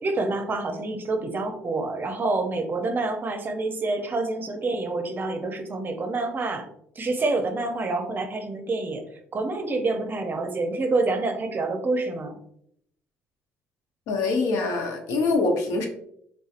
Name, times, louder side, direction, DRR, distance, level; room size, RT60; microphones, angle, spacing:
voice 1, 0.0-6.7 7.0-9.0 9.3-12.4, right 3 dB, 40° right, 5 dB, 0.6 m, -27 dB
voice 2, 14.1-15.9, left 3 dB, 85° left, 3 dB, 0.7 m, -24 dB
3.5 x 2.7 x 2.4 m, 0.70 s
supercardioid pair, 75°, 5 cm